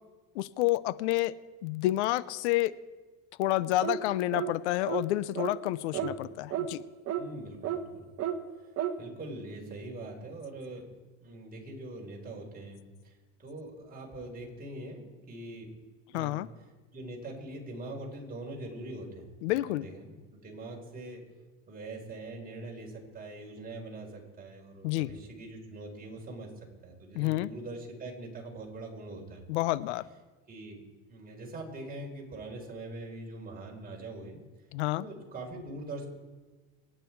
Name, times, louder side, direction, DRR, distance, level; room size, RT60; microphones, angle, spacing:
voice 1, 0.3-1.3 1.6-2.8 3.4-6.8 16.1-16.5 19.4-19.9 24.8-25.1 27.1-27.5 29.5-30.1 34.7-35.0, left 17 dB, 90° left, 18 dB, 0.7 m, -29 dB
sound 1, 3.8-4.0 4.3-4.5 4.9-5.1 5.4-5.5 5.9-6.1 6.5-6.7 7.1-7.2 7.6-7.8 8.2-8.4 8.8-9.0, right 10 dB, 45° right, 1.4 m, -31 dB
voice 2, 7.2-7.9 8.6-10.8 11.2-12.8 13.0-15.7 16.1-16.4 16.9-19.3 19.6-21.2 21.7-26.5 26.8-29.4 30.5-30.8 31.1-34.4 34.9-36.1, right 2 dB, 25° right, -1 dB, 4.6 m, -43 dB
25.5 x 9.1 x 4.6 m, 1.3 s
supercardioid pair, 105°, 34 cm